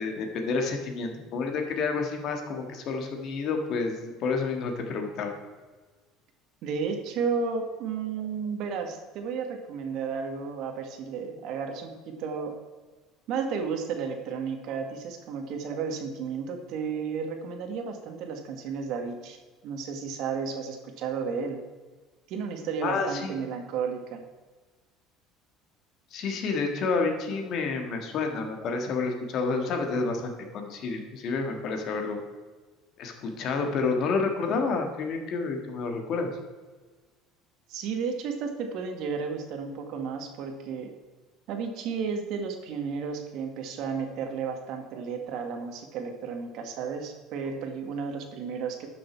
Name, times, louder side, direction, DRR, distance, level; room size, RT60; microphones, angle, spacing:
voice 1, 0.0-5.3 22.8-23.4 26.1-32.2 33.0-36.3, left 4 dB, 45° left, 4 dB, 1.7 m, -29 dB
voice 2, 6.6-12.5 13.3-19.4 19.6-21.6 22.3-24.2 37.7-40.9 41.5-48.9, right 5 dB, 55° right, 5 dB, 1.5 m, -33 dB
11.5 x 6.5 x 4.5 m, 1.3 s
cardioid pair, 150°, 0 cm